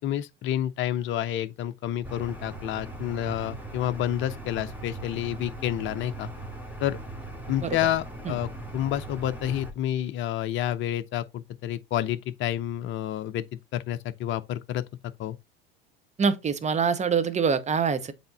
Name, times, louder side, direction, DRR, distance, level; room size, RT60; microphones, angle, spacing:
voice 1, 0.0-6.3 6.8-7.0 7.5-13.4 13.7-14.8 15.2-15.4, left 11 dB, 40° left, 0.7 m, -29 dB
sound 1, 2.0-9.7, right 2 dB, 5° right, 2.0 m, -39 dB
voice 2, 16.2-18.1, right 6 dB, 25° right, 1.0 m, -25 dB
7.8 x 3.5 x 4.1 m
hypercardioid pair, 80°, 30 cm